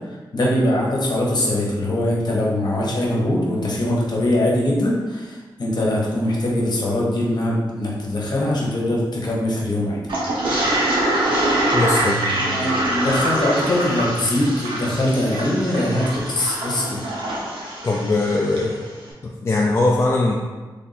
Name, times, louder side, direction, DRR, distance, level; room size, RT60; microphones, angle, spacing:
voice 1, 0.0-10.0 12.3-17.0, left 1 dB, 55° left, -4 dB, 1.0 m, -22 dB
Toilet flush, 10.1-18.7, right 1 dB, 80° right, 1.0 m, -24 dB
voice 2, 11.7-12.2 17.8-18.8 19.2-20.3, left 2 dB, 30° left, -2 dB, 0.3 m, -20 dB
sound 1, 12.0-13.5 13.8-15.6, right 4 dB, 60° right, 0.6 m, -37 dB
3.4 x 2.5 x 4.0 m, 1.3 s
wide cardioid pair, 115°, 9 cm